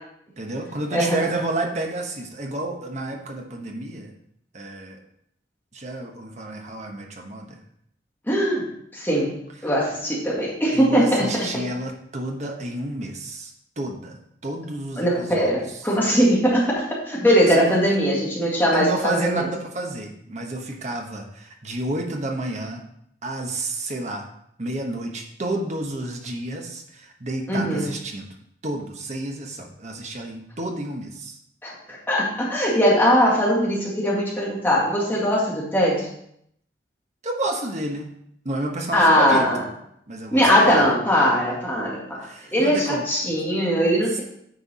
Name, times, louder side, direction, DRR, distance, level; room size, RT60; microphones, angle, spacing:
voice 1, 0.4-4.1 4.5-5.0 5.7-7.6 10.7-15.5 17.5-17.8 18.7-22.8 23.2-24.3 24.6-28.3 28.6-31.4 37.2-38.1 38.4-39.5 40.1-40.8 42.2-43.0, right 2 dB, 40° right, 2 dB, 1.1 m, -30 dB
voice 2, 0.9-1.2 8.3-8.7 8.9-9.4 9.6-11.6 15.0-19.5 27.5-27.9 31.6-36.1 38.9-39.6 40.3-42.3 42.5-44.2, equal, 10° left, -5 dB, 2.0 m, -20 dB
9.2 x 4.5 x 4.2 m, 0.72 s
head